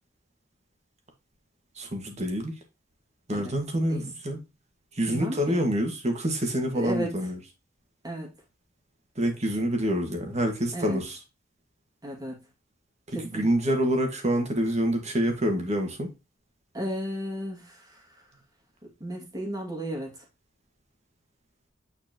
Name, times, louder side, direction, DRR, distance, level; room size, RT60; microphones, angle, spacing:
voice 1, 1.8-2.5 3.3-4.4 4.9-7.4 9.2-11.2 13.1-16.1, equal, 35° right, 1.7 m, -27 dB
voice 2, 5.1-5.6 6.7-7.2 8.0-8.3 10.7-11.0 12.0-12.3 13.1-13.4 16.7-18.0 19.0-20.1, equal, 20° right, 2.1 m, -34 dB
8.9 x 4.4 x 2.9 m
head